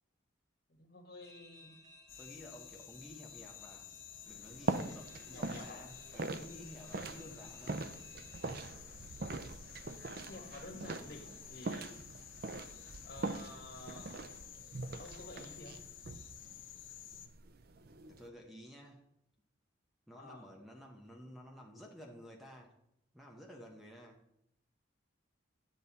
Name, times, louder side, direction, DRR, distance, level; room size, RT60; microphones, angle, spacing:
voice 1, 0.8-1.8 5.3-5.8 10.3-11.9 13.0-14.2 15.0-15.8 20.1-20.5, left 2 dB, 55° left, 3 dB, 1.7 m, -51 dB
sound 1, 1.2-8.6, left 1 dB, 20° right, 1.2 m, -61 dB
sound 2, 2.1-17.3, left 10 dB, 85° left, 0.9 m, -53 dB
voice 2, 2.2-3.9 4.2-7.8 18.1-19.0 20.1-22.7 23.1-24.2, equal, ahead, 1 dB, 0.9 m, -53 dB
sound 3, 4.3-18.3, right 3 dB, 50° right, 0.5 m, -43 dB
10.5 x 7.7 x 4.1 m, 0.79 s
head